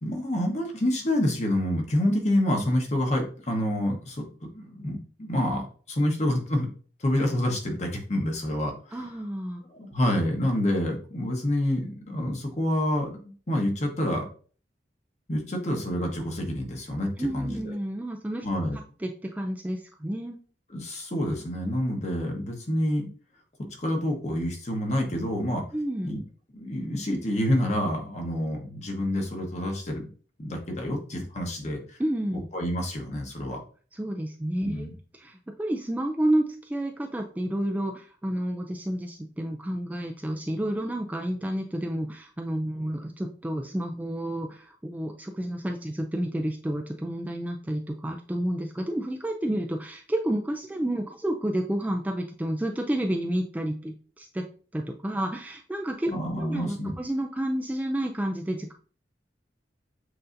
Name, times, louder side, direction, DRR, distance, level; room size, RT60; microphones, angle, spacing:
voice 1, 0.0-4.2 4.5-6.7 7.0-9.1 9.7-14.2 15.3-17.6 18.4-18.8 20.7-23.1 23.8-25.6 26.0-26.2 26.5-30.1 30.4-32.0 32.5-33.6 34.6-34.9 56.1-56.9, left 1 dB, 40° left, 2 dB, 1.0 m, -27 dB
voice 2, 8.9-9.6 17.2-18.5 19.0-20.4 25.7-26.2 32.0-32.5 33.9-34.9 35.2-54.4 54.7-56.1 56.4-58.7, right 1 dB, 10° right, 2 dB, 0.3 m, -30 dB
7.7 x 2.7 x 2.5 m, 0.41 s
head